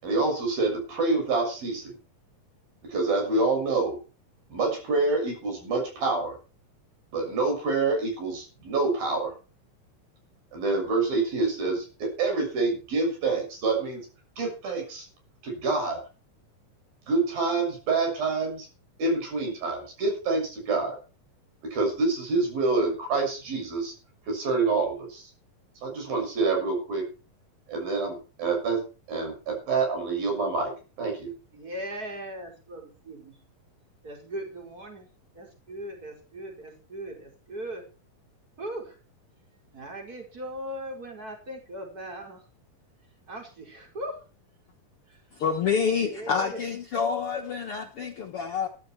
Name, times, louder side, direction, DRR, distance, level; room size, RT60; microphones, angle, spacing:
voice 1, 0.0-1.9 2.8-4.0 4.5-6.4 7.1-9.3 10.5-14.1 14.4-15.1 15.4-16.1 17.1-18.7 19.0-21.0 21.7-23.9 24.3-25.2 25.8-27.1 27.7-28.8 29.1-30.7 31.0-31.3, right 3 dB, 90° right, 3 dB, 8.8 m, -27 dB
voice 2, 31.5-33.3 34.0-35.1 35.4-37.8 38.6-39.0 39.7-42.4 43.3-44.1 45.9-46.6, right 1 dB, 25° right, 1 dB, 5.4 m, -38 dB
voice 3, 45.4-48.7, left 6 dB, 60° left, 4 dB, 1.6 m, -27 dB
14.5 x 13.5 x 4.6 m, 0.35 s
omnidirectional pair, 4.0 m